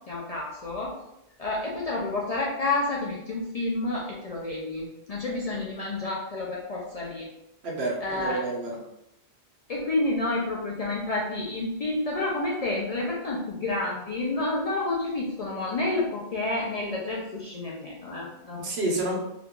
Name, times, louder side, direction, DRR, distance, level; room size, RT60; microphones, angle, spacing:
voice 1, 0.1-0.9 1.4-7.3 8.0-8.4 9.7-19.2, left 2 dB, 50° left, -4 dB, 0.5 m, -29 dB
voice 2, 7.6-8.8 18.6-19.2, right 2 dB, 70° right, -2 dB, 1.0 m, -29 dB
2.8 x 2.3 x 3.6 m, 0.85 s
omnidirectional pair, 1.1 m